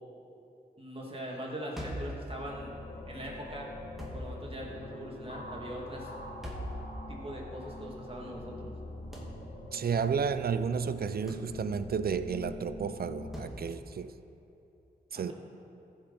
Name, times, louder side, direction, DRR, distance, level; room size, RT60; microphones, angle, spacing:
voice 1, 0.8-2.7 3.1-3.7 4.1-6.1 7.1-8.7 15.1-15.3, equal, 35° right, -3 dB, 2.4 m, -41 dB
sound 1, 1.8-2.2 4.0-4.3 6.4-6.8 9.1-9.4 11.3-11.5 13.3-13.6, equal, ahead, 2.1 m, -40 dB
sound 2, 2.0-13.5, left 1 dB, 70° left, 1.4 m, -44 dB
voice 2, 9.7-14.1 15.1-15.3, right 6 dB, 65° right, 12 dB, 0.5 m, -32 dB
14.5 x 5.4 x 4.3 m, 2.8 s
cardioid pair, 45°, 17 cm